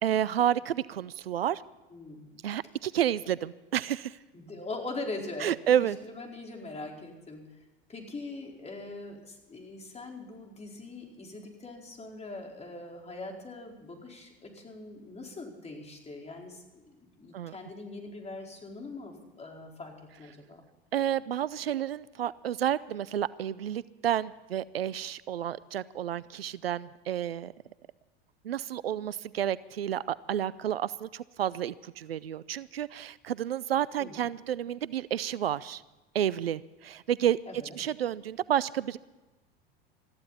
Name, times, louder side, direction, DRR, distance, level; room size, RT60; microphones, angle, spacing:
voice 1, 0.0-1.6 2.4-4.2 5.4-6.0 17.3-17.5 20.9-27.5 28.4-35.8 36.1-37.4 37.7-39.0, right 10 dB, 90° right, 20 dB, 0.5 m, -30 dB
voice 2, 1.9-2.3 4.3-7.5 7.9-20.6 34.0-34.1 37.5-37.8, left 2 dB, 20° left, 1 dB, 4.5 m, -42 dB
21.5 x 14.5 x 4.2 m, 1.1 s
hypercardioid pair, 80°, 29 cm